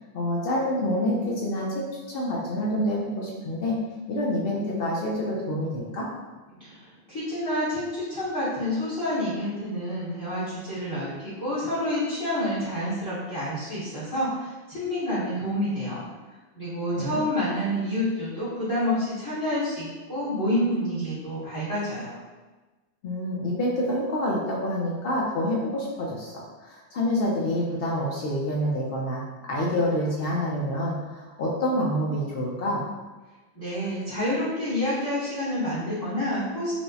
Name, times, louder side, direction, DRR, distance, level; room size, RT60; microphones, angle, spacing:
voice 1, 0.1-3.8 4.1-6.1 16.9-17.2 23.0-29.2 29.5-32.8, left 1 dB, 65° left, -3 dB, 0.7 m, -27 dB
voice 2, 6.6-16.0 16.5-22.2 33.5-36.7, left 1 dB, 20° left, -11 dB, 0.9 m, -28 dB
4.4 x 2.0 x 2.7 m, 1.2 s
omnidirectional pair, 1.1 m